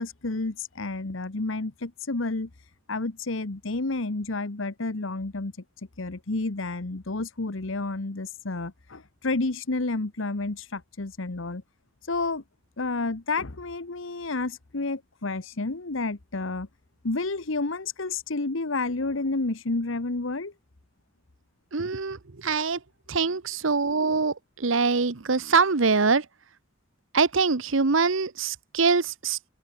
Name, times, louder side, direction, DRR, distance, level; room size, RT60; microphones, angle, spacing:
voice 1, 0.0-2.5 2.9-5.5 6.0-11.6 12.1-12.4 12.8-16.7 17.0-20.5, left 3 dB, 75° left, 1.2 m, -30 dB
voice 2, 21.7-22.8 23.1-26.2 27.1-29.4, right 4 dB, 75° right, 1.0 m, -24 dB
head